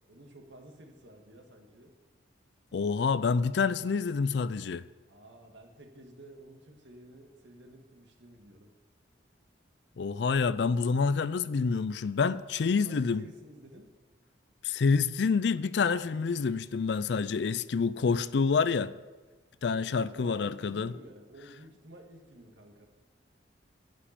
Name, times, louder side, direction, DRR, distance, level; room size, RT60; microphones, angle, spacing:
voice 1, 0.1-1.9 5.1-8.7 12.6-13.9 19.7-22.9, right 1 dB, 75° right, 1.7 m, -52 dB
voice 2, 2.7-4.8 10.0-13.2 14.6-18.9 19.6-20.9, left 5 dB, 65° left, 0.4 m, -27 dB
11.5 x 5.4 x 8.5 m
head